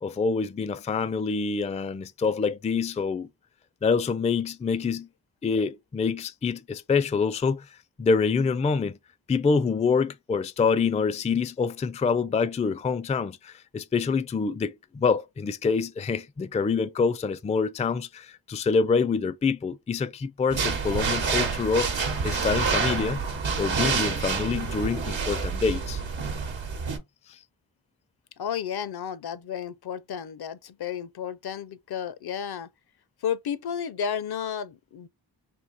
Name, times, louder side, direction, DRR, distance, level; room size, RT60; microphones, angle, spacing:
voice 1, 0.0-3.3 3.8-5.1 5.4-9.0 9.3-21.9 22.2-23.2 23.6-26.0, left 5 dB, 15° left, 0.3 m, -26 dB
sound 1, 20.5-27.0, right 5 dB, 85° right, 1.0 m, -28 dB
voice 2, 28.4-32.7 33.2-35.1, left 8 dB, 60° left, 0.6 m, -32 dB
3.7 x 2.6 x 4.0 m
cardioid pair, 50°, 44 cm